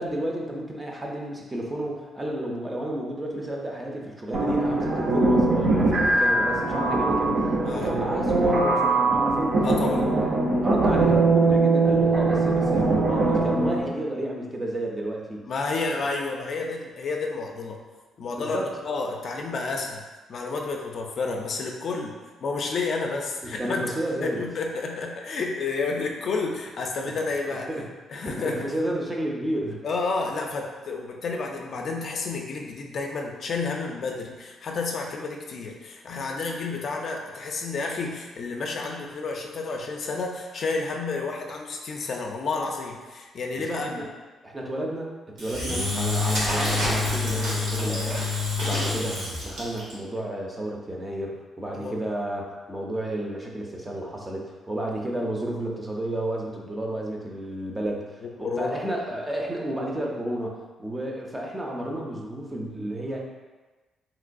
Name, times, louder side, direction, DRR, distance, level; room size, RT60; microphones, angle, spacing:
voice 1, 0.0-7.4 7.7-9.6 10.2-10.3 10.6-15.4 18.4-18.7 23.4-24.4 27.5-27.9 28.2-29.8 43.7-44.1 44.4-48.3 48.6-63.2, right 1 dB, 15° right, -1 dB, 0.4 m, -31 dB
sound 1, 4.3-13.9, right 2 dB, 65° right, 0.6 m, -22 dB
voice 2, 7.6-8.0 9.6-10.1 15.5-17.8 18.2-20.0 20.3-23.9 24.2-27.7 28.1-28.7 29.8-44.0 51.7-52.0 58.2-58.8, left 3 dB, 50° left, 1 dB, 0.4 m, -30 dB
Engine / Drill, 45.4-49.9, left 3 dB, 85° right, 1.1 m, -27 dB
3.0 x 2.9 x 2.5 m, 1.3 s
cardioid pair, 135°, 0 cm